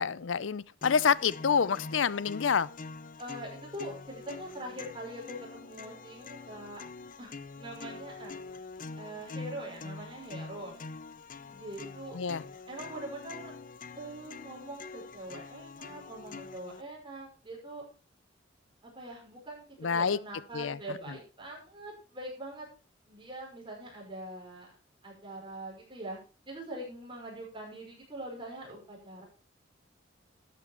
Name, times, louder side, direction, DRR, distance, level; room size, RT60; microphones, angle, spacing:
voice 1, 0.0-2.7 12.1-12.4 19.8-20.2 20.5-21.0, left 6 dB, 85° left, 0.6 m, -28 dB
sound 1, 0.8-16.8, left 4 dB, 45° left, 0.7 m, -45 dB
voice 2, 3.2-6.8 7.2-8.4 9.0-10.8 11.5-12.2 12.7-13.5 13.9-17.8 18.8-22.7 23.1-24.7 25.0-26.2 26.5-29.2, right 1 dB, 25° right, 5.4 m, -43 dB
12.5 x 8.6 x 4.4 m
head